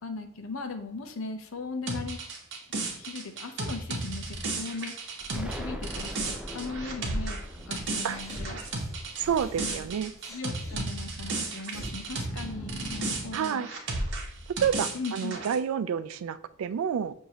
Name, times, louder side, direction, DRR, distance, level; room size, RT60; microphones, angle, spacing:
voice 1, 0.0-2.2 3.0-8.6 9.6-9.7 10.3-13.7 14.9-15.4, left 4 dB, 75° left, 6 dB, 0.6 m, -38 dB
sound 1, 1.9-12.4 12.7-15.5, right 3 dB, 60° right, 1.0 m, -34 dB
Explosion, 5.3-10.2, equal, 5° right, 0.4 m, -41 dB
sound 2, 8.0-10.8 11.3-13.4, equal, 15° left, 1.2 m, -41 dB
voice 2, 9.2-10.1 13.3-13.7 14.6-17.1, right 8 dB, 85° right, 14 dB, 0.3 m, -29 dB
6.4 x 2.7 x 2.9 m, 0.72 s
head